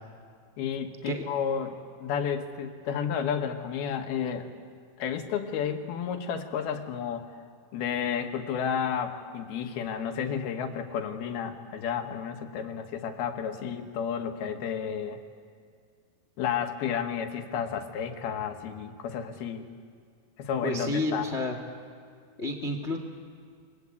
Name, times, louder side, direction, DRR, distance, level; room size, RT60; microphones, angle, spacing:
voice 1, 0.6-4.5 5.0-7.3 7.7-15.2 16.4-19.7 20.4-21.3, left 7 dB, 90° left, 5 dB, 3.4 m, -32 dB
voice 2, 20.6-21.5 22.4-23.0, left 1 dB, 40° left, 5 dB, 0.9 m, -30 dB
29.0 x 22.0 x 8.4 m, 2.1 s
omnidirectional pair, 4.3 m